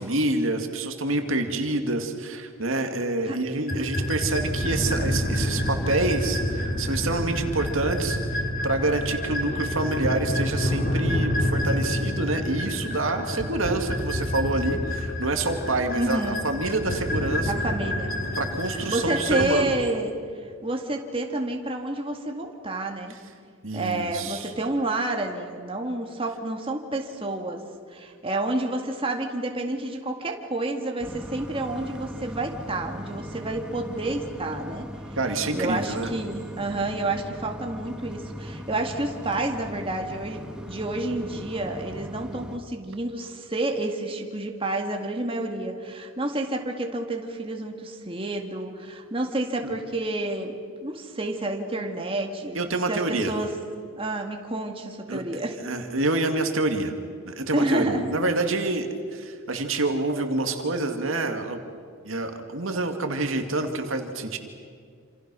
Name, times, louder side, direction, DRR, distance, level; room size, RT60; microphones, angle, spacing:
voice 1, 0.0-17.5 18.4-19.7 23.6-24.5 35.2-36.1 49.6-49.7 52.5-53.3 55.1-55.2 55.6-56.9 57.2-61.6 62.0-64.4, right 2 dB, 80° right, 5 dB, 2.2 m, -27 dB
sound 1, 3.7-19.5, left 1 dB, 45° left, 3.1 m, -28 dB
voice 2, 16.0-16.4 17.5-18.1 18.7-20.1 20.6-23.2 23.7-27.6 27.9-34.9 35.5-53.5 53.9-55.6 57.5-58.1, right 2 dB, 25° right, 2 dB, 2.0 m, -29 dB
sound 2, 31.0-42.6, equal, 5° right, 1.7 m, -39 dB
28.0 x 27.0 x 6.3 m, 2.1 s
head